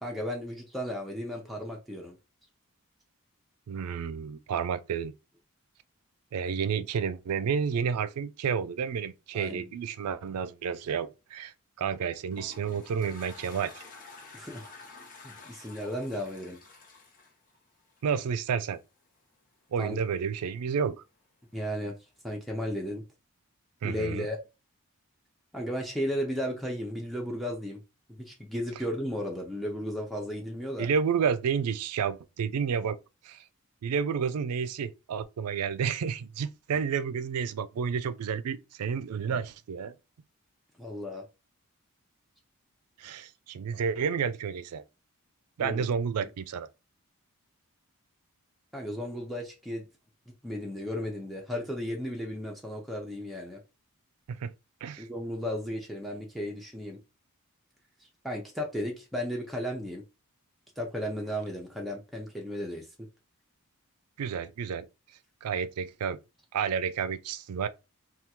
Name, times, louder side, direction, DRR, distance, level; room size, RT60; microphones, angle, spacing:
voice 1, 0.0-2.2 9.3-9.7 14.3-14.7 15.2-16.6 19.8-20.0 21.5-22.0 22.2-23.0 23.8-24.4 25.5-27.8 28.2-30.9 40.8-41.2 45.6-45.8 48.7-49.8 50.4-53.6 55.0-57.0 58.0-60.0 60.8-62.9, equal, ahead, 0.5 m, -34 dB
voice 2, 3.7-5.1 6.3-13.8 18.0-18.8 19.7-21.0 23.8-24.3 30.8-33.0 33.2-33.4 33.8-39.9 43.0-44.8 45.6-46.7 54.3-54.5 54.8-55.1 64.2-64.9 65.4-66.2 66.5-67.7, right 6 dB, 85° right, 0.4 m, -30 dB
Toilet flush, 12.0-18.3, left 4 dB, 40° left, 0.9 m, -50 dB
3.5 x 2.3 x 2.9 m
head